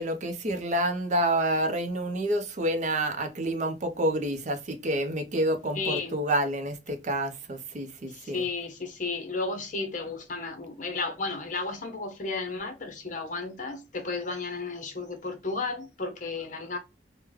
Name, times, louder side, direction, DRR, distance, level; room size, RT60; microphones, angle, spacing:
voice 1, 0.0-8.5, right 1 dB, 45° right, 0.6 m, -28 dB
voice 2, 5.7-6.1 8.1-16.8, left 3 dB, 45° left, 0.9 m, -33 dB
3.5 x 2.1 x 3.0 m
head